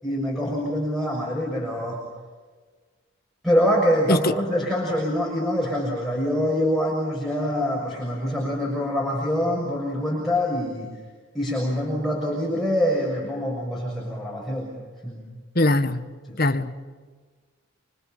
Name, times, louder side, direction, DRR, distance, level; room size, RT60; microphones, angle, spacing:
voice 1, 0.0-2.0 3.4-10.9 11.3-14.7 15.0-15.2 16.3-16.4, equal, ahead, 6.6 m, -25 dB
voice 2, 15.6-16.0 16.4-16.9, left 1 dB, 45° left, 1.7 m, -21 dB
29.0 x 25.0 x 7.5 m
head